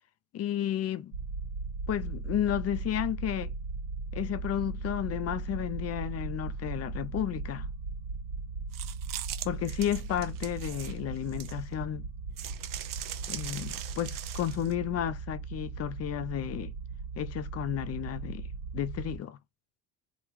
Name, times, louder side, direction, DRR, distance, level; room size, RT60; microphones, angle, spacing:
voice 1, 0.3-1.1 1.9-3.5 4.1-7.7 9.4-12.1 13.3-16.7 17.2-18.5 18.7-19.4, left 11 dB, 40° left, 0.5 m, -32 dB
sound 1, 1.1-19.2, right 4 dB, 80° right, 1.3 m, -38 dB
sound 2, 8.7-11.8 12.4-14.7, right 12 dB, 55° right, 0.5 m, -41 dB
3.0 x 2.3 x 3.5 m
cardioid pair, 95°, 39 cm